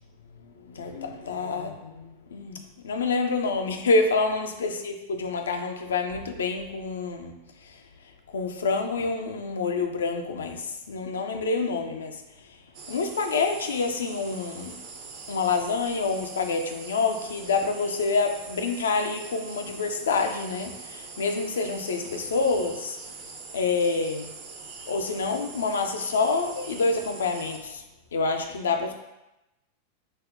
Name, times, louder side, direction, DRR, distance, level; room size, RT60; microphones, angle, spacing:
voice 1, 0.6-7.3 7.6-7.8 8.3-12.2 12.9-14.8 15.3-23.0 23.5-24.3 24.9-27.8 28.1-28.9, left 4 dB, 65° left, 5 dB, 0.4 m, -27 dB
sound 1, 12.7-27.6, right 4 dB, 45° right, 0.5 m, -43 dB
5.2 x 2.1 x 2.5 m, 0.94 s
figure-of-eight pair, 90°, 0 cm